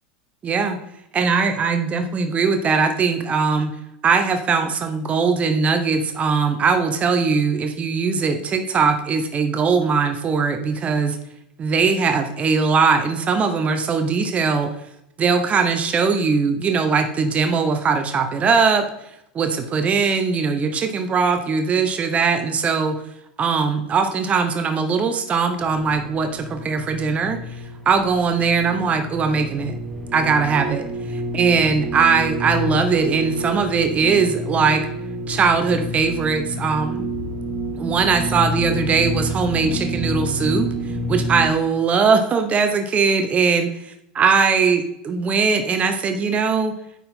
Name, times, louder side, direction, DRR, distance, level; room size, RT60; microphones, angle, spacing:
voice 1, 0.4-0.8 1.1-3.7 4.0-11.2 11.6-14.7 15.2-18.8 19.3-23.0 23.4-27.4 27.9-29.7 30.1-30.8 31.3-34.8 35.3-37.1 37.8-40.7 41.1-46.7, right 5 dB, 30° right, 6 dB, 0.8 m, -20 dB
sound 1, 25.6-41.5, equal, 5° left, 1.5 m, -29 dB
9.1 x 4.5 x 3.7 m, 0.79 s
hypercardioid pair, 95°, 5 cm